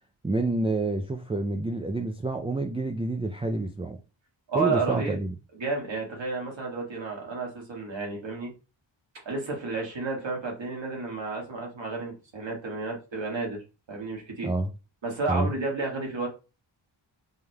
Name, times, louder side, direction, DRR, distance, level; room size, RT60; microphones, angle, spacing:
voice 1, 0.2-4.0 4.5-5.3 14.4-14.7 15.3-15.5, right 2 dB, 15° right, 0.3 m, -28 dB
voice 2, 4.5-5.2 5.5-8.5 9.2-13.6 13.9-14.5 15.0-16.3, right 3 dB, 65° right, 1.8 m, -31 dB
5.4 x 3.2 x 2.3 m
wide cardioid pair, 95°, 48 cm